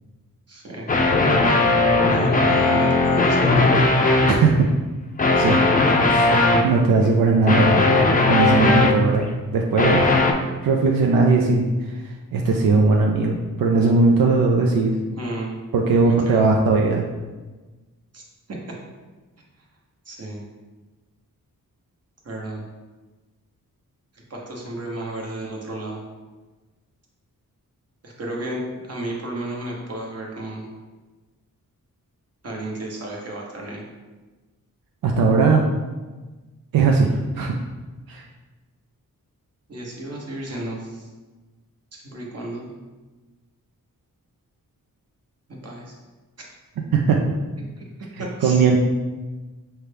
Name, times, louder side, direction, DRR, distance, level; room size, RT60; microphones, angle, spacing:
voice 1, 0.5-0.9 2.1-4.0 5.4-5.5 15.2-15.5 16.1-16.5 18.1-18.2 20.1-20.4 22.2-22.6 24.3-26.0 28.0-30.7 32.4-33.8 39.7-41.1 41.9-42.7 45.5-46.0 48.2-48.6, right 2 dB, 45° right, -2 dB, 1.0 m, -32 dB
sound 1, 0.9-4.4 5.2-6.7 7.5-9.2 9.8-10.3, left 3 dB, 25° left, 0.5 m, -18 dB
voice 2, 4.3-4.7 5.4-5.6 6.1-6.3 6.6-7.8 8.3-10.1 10.6-15.0 15.7-17.0 35.0-35.7 36.7-37.6 38.1-38.2 46.9-47.2 48.4-48.8, right 4 dB, 80° right, 0 dB, 0.5 m, -19 dB
5.6 x 2.2 x 3.3 m, 1.2 s
wide cardioid pair, 85°, 34 cm